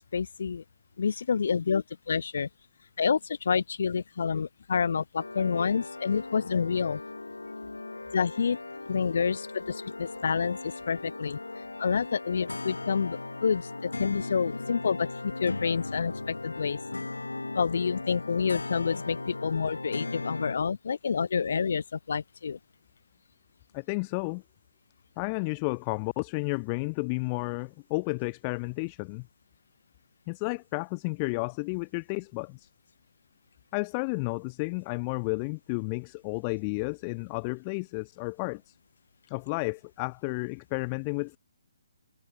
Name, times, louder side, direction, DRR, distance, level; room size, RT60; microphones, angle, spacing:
voice 1, 0.1-0.6 1.0-2.5 3.0-7.0 8.1-8.6 8.9-11.4 11.8-16.8 17.5-22.6, left 6 dB, 55° left, 1.3 m, -28 dB
sound 1, 5.2-20.5, left 2 dB, 80° left, 1.7 m, -38 dB
voice 2, 23.7-24.4 25.2-29.3 30.3-32.7 33.7-38.8 39.3-41.4, left 31 dB, 25° left, 0.9 m, -32 dB
figure-of-eight pair, 140°, 0 cm